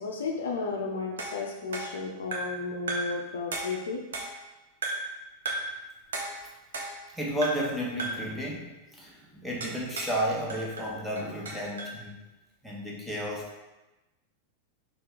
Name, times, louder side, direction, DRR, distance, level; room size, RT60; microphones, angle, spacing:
voice 1, 0.0-4.0, left 4 dB, 65° left, 1 dB, 0.5 m, -33 dB
sound 1, 1.2-2.6 2.9-3.2 3.5-4.5 4.8-5.2 5.4-5.8 6.1-7.1 7.4-7.7 8.0-8.3 9.6-10.2 10.5-12.0, right 2 dB, 65° right, 0.7 m, -35 dB
voice 2, 7.2-12.2 12.6-13.6, equal, ahead, -4 dB, 1.0 m, -32 dB
4.3 x 2.7 x 3.7 m, 1.0 s
figure-of-eight pair, 90°, 0 cm